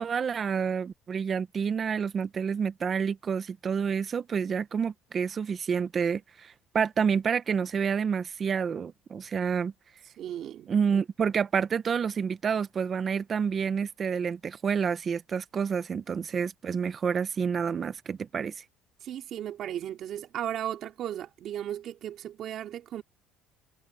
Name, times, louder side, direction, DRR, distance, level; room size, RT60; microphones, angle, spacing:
voice 1, 0.0-9.7 10.7-18.6, right 6 dB, 35° right, 1.1 m, -29 dB
voice 2, 10.2-10.7 19.0-23.0, right 11 dB, 55° right, 3.1 m, -35 dB
cardioid pair, 120°, 0 cm